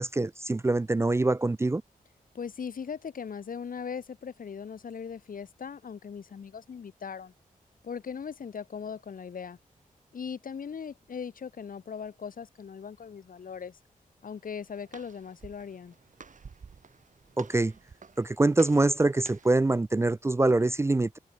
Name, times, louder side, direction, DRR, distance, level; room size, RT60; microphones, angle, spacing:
voice 1, 0.0-1.8 17.4-17.7 18.2-21.2, right 2 dB, 20° right, 0.4 m, -24 dB
voice 2, 2.3-7.3 7.8-9.6 10.1-13.8 14.2-16.0, left 6 dB, 70° left, 2.2 m, -39 dB
Walk footsteps, 14.3-19.6, right 5 dB, 60° right, 6.6 m, -51 dB
wide cardioid pair, 100°, 15 cm